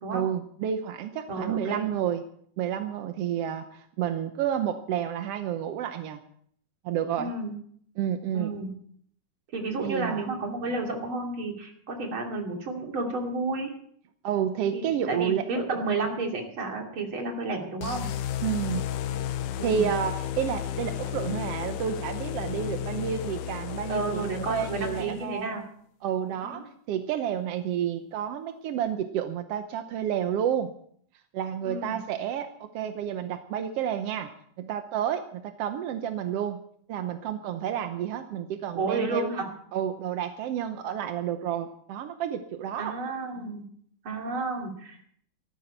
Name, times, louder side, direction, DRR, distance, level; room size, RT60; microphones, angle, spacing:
voice 1, 0.1-2.2 2.6-6.2 6.8-7.3 8.0-8.5 9.8-10.3 14.2-15.5 18.4-18.9 19.6-25.5 26.0-26.6 26.9-30.7 31.3-34.3 34.6-36.6 36.9-39.3 39.7-42.9, right 9 dB, 70° right, 7 dB, 1.5 m, -30 dB
voice 2, 1.3-1.9 7.2-7.5 8.3-8.7 9.5-13.7 14.7-18.1 19.6-19.9 23.9-25.6 26.5-26.6 31.6-32.0 38.7-39.5 42.8-43.6 44.0-45.1, right 3 dB, 40° right, 1 dB, 3.4 m, -31 dB
sound 1, 17.8-25.4, left 10 dB, 80° left, 2.2 m, -33 dB
18.0 x 14.0 x 4.5 m, 0.62 s
omnidirectional pair, 3.6 m